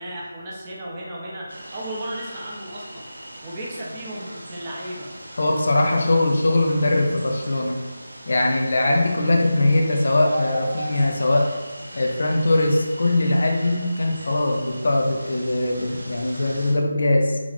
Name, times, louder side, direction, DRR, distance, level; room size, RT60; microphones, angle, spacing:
voice 1, 0.0-3.0 3.4-5.1, right 1 dB, 20° right, -4 dB, 0.5 m, -34 dB
sound 1, 1.5-16.7, right 1 dB, 85° right, 0.9 m, -39 dB
voice 2, 5.4-7.8 8.3-11.5 11.9-17.4, left 2 dB, 55° left, 1 dB, 0.5 m, -21 dB
3.9 x 2.0 x 2.9 m, 1.2 s
figure-of-eight pair, 170°, 0 cm